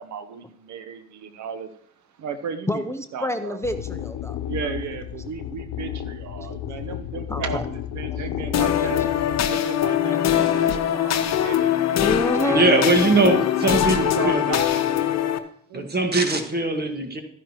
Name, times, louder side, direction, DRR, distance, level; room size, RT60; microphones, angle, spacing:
voice 1, 0.0-1.7 2.2-3.6 4.5-9.0 9.4-11.8 12.4-14.8 15.7-15.8, right 6 dB, 70° right, 10 dB, 0.9 m, -34 dB
voice 2, 2.7-4.4 7.3-7.6 8.8-8.9 9.5-9.6 10.1-10.2 12.0-12.7, left 1 dB, 10° left, 9 dB, 0.5 m, -27 dB
sound 1, 3.6-9.5, left 11 dB, 85° left, 0.5 m, -33 dB
sound 2, 8.5-15.4, left 10 dB, 60° left, 0.8 m, -22 dB
voice 3, 12.5-14.4 15.7-17.2, right 2 dB, 30° right, 5 dB, 1.6 m, -21 dB
13.0 x 10.5 x 3.0 m, 0.69 s
cardioid pair, 90°, 30 cm